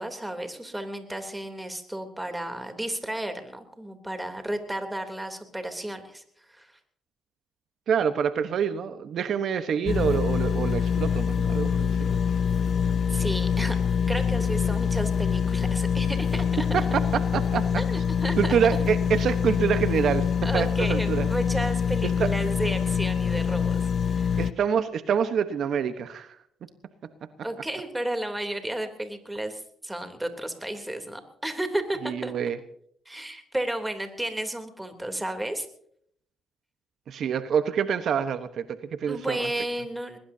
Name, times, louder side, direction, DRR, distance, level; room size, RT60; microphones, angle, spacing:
voice 1, 0.0-6.8 13.1-13.8 14.1-16.7 17.8-18.6 20.4-24.4 27.4-32.3 33.0-35.7 39.1-40.2, right 1 dB, 10° right, 6 dB, 3.2 m, -33 dB
voice 2, 7.9-12.2 16.7-17.0 17.3-17.6 18.4-20.3 20.5-21.3 22.2-22.3 24.4-26.4 32.0-32.6 37.1-39.4, right 7 dB, 65° right, 10 dB, 1.1 m, -26 dB
sound 1, 9.9-24.5, left 7 dB, 50° left, 0.6 m, -25 dB
21.5 x 20.5 x 2.8 m, 0.66 s
cardioid pair, 90°, 0 cm